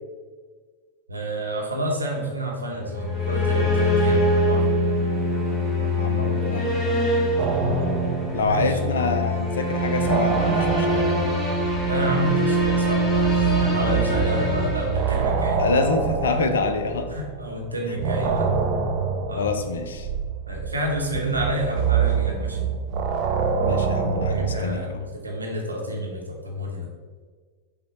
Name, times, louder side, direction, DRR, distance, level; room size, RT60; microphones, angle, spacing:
voice 1, 1.1-4.7 8.4-8.8 11.8-15.6 17.1-18.5 19.3-19.5 20.5-22.7 24.3-26.9, right 1 dB, 80° right, -1 dB, 0.8 m, -29 dB
sound 1, 2.8-15.6, equal, 15° left, 0.9 m, -24 dB
voice 2, 6.0-6.9 8.3-11.1 15.6-17.1 17.9-18.0 19.3-20.1 23.5-25.0, left 4 dB, 65° left, 7 dB, 0.4 m, -26 dB
sound 2, 7.4-9.2 9.5-17.4 18.0-24.9, right 6 dB, 40° right, 0.5 m, -26 dB
5.5 x 2.2 x 4.1 m, 1.5 s
figure-of-eight pair, 90°, 0 cm